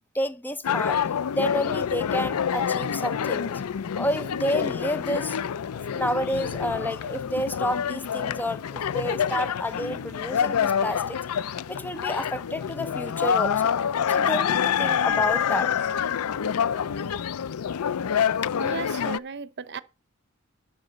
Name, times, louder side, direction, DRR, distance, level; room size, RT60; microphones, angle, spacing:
voice 1, 0.1-1.0 1.3-3.6 3.9-5.4 5.9-11.2 11.7-13.8 14.1-15.7, equal, 10° left, 0.6 m, -30 dB
sound 1, 0.6-19.2, left 8 dB, 85° left, 0.5 m, -27 dB
voice 2, 18.6-19.8, right 5 dB, 50° right, 0.8 m, -35 dB
11.5 x 7.2 x 5.2 m
head